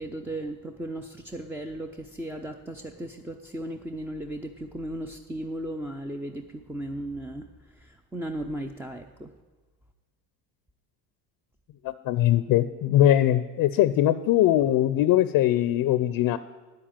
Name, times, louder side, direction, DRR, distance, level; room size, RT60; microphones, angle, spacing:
voice 1, 0.0-9.3, right 1 dB, 5° right, 5 dB, 0.4 m, -36 dB
voice 2, 11.8-16.4, left 12 dB, 50° left, 14 dB, 0.5 m, -21 dB
9.6 x 7.6 x 8.7 m, 1.3 s
supercardioid pair, 100°, 44 cm